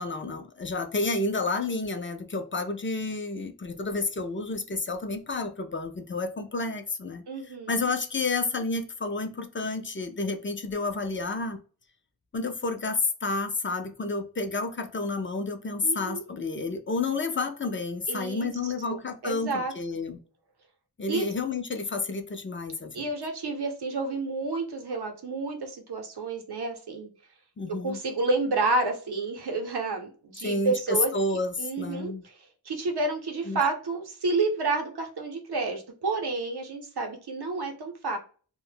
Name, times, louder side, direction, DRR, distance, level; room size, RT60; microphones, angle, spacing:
voice 1, 0.0-7.2 7.7-11.6 12.3-20.2 21.0-23.1 27.6-28.0 30.4-32.2 33.5-33.6, left 3 dB, 30° left, 6 dB, 0.4 m, -30 dB
voice 2, 7.3-7.9 15.8-16.2 18.1-18.5 18.9-19.7 21.1-21.3 22.9-27.1 27.8-31.1 31.6-32.4 32.7-38.2, right 3 dB, 80° right, 4 dB, 0.7 m, -30 dB
2.1 x 2.0 x 3.3 m, 0.39 s
wide cardioid pair, 60°, 39 cm